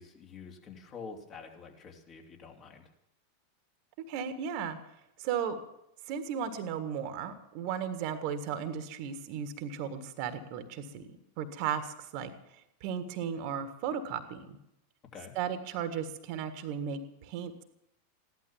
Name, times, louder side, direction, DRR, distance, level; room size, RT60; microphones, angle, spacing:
voice 1, 0.0-2.8 15.1-15.3, left 5 dB, 35° left, 1 dB, 3.1 m, -47 dB
voice 2, 4.1-4.8 5.2-5.6 6.1-11.1 11.4-12.3 12.8-14.6 15.3-17.6, right 8 dB, 50° right, 9 dB, 1.7 m, -35 dB
15.5 x 12.0 x 7.3 m, 0.83 s
figure-of-eight pair, 90°, 0 cm